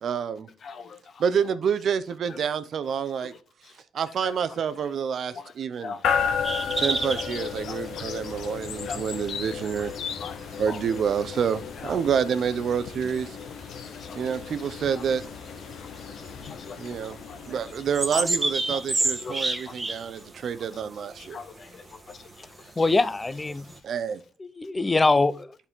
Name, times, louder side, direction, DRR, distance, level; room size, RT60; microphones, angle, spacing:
voice 1, 0.0-0.5 1.2-3.3 3.9-6.0 6.8-9.9 10.6-13.4 14.1-15.2 16.8-17.2 17.5-21.4 23.8-24.2, right 7 dB, 60° right, 0.7 m, -28 dB
voice 2, 0.6-1.2 2.3-2.4 3.2-3.3 3.6-3.8 4.2-4.3 5.3-5.5 5.8-6.7 7.1-7.2 7.6-8.1 8.8-9.0 9.8-9.9 10.2-10.4 10.7-10.8 11.8-11.9 13.7-14.2 14.9-15.0 15.8-15.9 16.2-16.8 17.0-17.6 18.1-18.3 18.7-18.8 19.1-20.5 20.7-20.8 21.2-22.9 23.6-23.7, left 5 dB, 50° left, 1.2 m, -42 dB
sound 1, 6.0-19.0, left 7 dB, 75° left, 0.9 m, -34 dB
sound 2, 6.4-23.8, right 2 dB, 20° right, 1.2 m, -34 dB
voice 3, 22.8-23.7 24.4-25.6, left 3 dB, 20° left, 0.5 m, -23 dB
11.0 x 4.3 x 3.6 m
cardioid pair, 90°, 0 cm